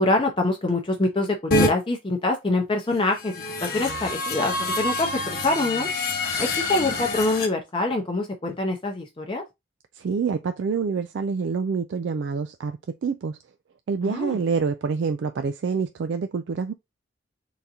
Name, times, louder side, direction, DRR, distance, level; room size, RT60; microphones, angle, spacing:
voice 1, 0.0-5.9 6.4-9.4 14.0-14.4, left 2 dB, 25° left, 0.6 m, -25 dB
sound 1, 1.5-1.7 3.1-7.5, left 2 dB, 50° left, 1.2 m, -26 dB
voice 2, 9.9-13.4 13.9-16.7, right 5 dB, 65° right, 0.3 m, -27 dB
3.9 x 3.5 x 2.8 m
head